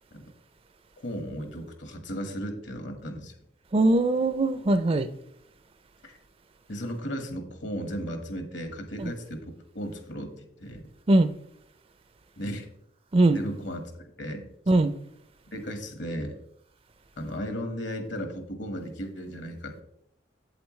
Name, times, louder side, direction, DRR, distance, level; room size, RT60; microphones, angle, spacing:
voice 1, 1.0-3.3 6.0-6.1 6.7-10.8 12.4-12.7 13.3-14.5 15.5-16.4 17.2-19.8, equal, 75° left, 1.6 m, -35 dB
voice 2, 3.7-5.1 9.0-9.1 11.1-11.3 13.1-13.4 14.7-14.9, right 2 dB, 30° right, 0.4 m, -21 dB
8.2 x 8.0 x 3.2 m
head